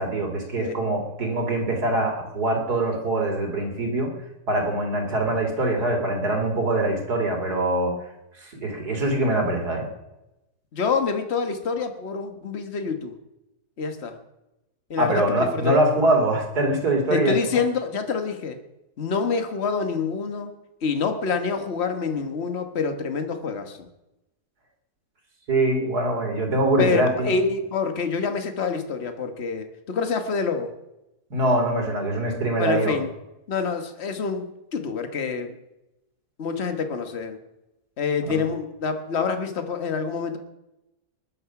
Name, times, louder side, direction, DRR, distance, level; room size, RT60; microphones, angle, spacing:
voice 1, 0.0-4.1 4.5-7.9 8.4-9.9 15.0-17.4 25.5-27.3 31.3-33.0 38.3-38.4, right 1 dB, 90° right, 2 dB, 3.6 m, -23 dB
voice 2, 10.7-13.1 13.8-14.2 14.9-15.8 17.1-18.6 19.0-20.5 20.8-23.9 26.8-30.7 32.6-33.1 33.5-35.6 36.4-37.4 38.0-40.4, left 5 dB, 45° left, 7 dB, 1.6 m, -27 dB
21.0 x 11.0 x 5.9 m, 0.94 s
omnidirectional pair, 1.6 m